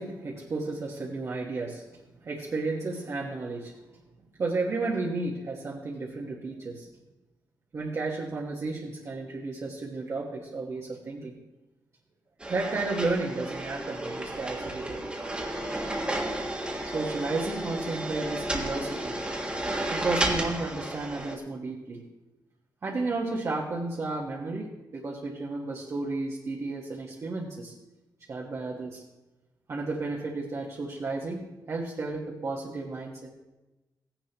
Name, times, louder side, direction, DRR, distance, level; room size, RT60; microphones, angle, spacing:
voice 1, 0.0-1.8 2.2-3.7 4.4-6.9 7.7-11.3 12.5-15.0 16.9-19.2 19.9-22.0 22.8-27.7 28.3-29.0 29.7-33.3, right 3 dB, 40° right, -3 dB, 1.3 m, -33 dB
sound 1, 12.4-21.4, right 1 dB, 15° right, 1.4 m, -32 dB
16.0 x 10.0 x 3.0 m, 1.0 s
wide cardioid pair, 155°, 7 cm